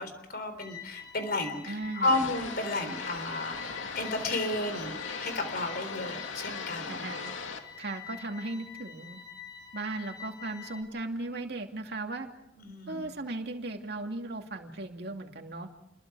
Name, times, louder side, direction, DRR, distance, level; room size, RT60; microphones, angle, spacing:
voice 1, 0.0-7.0 12.6-13.1, left 2 dB, 50° left, 9 dB, 3.9 m, -33 dB
sound 1, 0.6-10.8, left 9 dB, 20° left, 3.0 m, -46 dB
voice 2, 1.7-2.3 6.9-7.3 7.8-9.2 9.7-12.3 12.9-15.7, right 2 dB, 55° right, 3 dB, 2.6 m, -37 dB
sound 2, 2.0-7.6, left 4 dB, 85° left, 2.6 m, -38 dB
29.5 x 22.0 x 4.9 m, 0.85 s
head